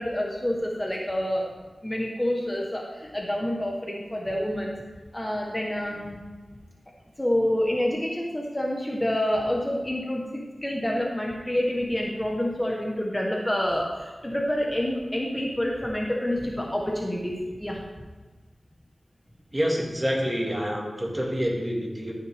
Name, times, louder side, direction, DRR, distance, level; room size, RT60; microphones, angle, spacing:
voice 1, 0.0-1.5 1.8-4.7 5.1-6.2 7.2-17.8, left 1 dB, 15° left, -1 dB, 1.2 m, -28 dB
voice 2, 19.5-22.1, equal, 20° right, -2 dB, 1.9 m, -27 dB
13.5 x 5.7 x 3.5 m, 1.2 s
wide cardioid pair, 75°, 0 cm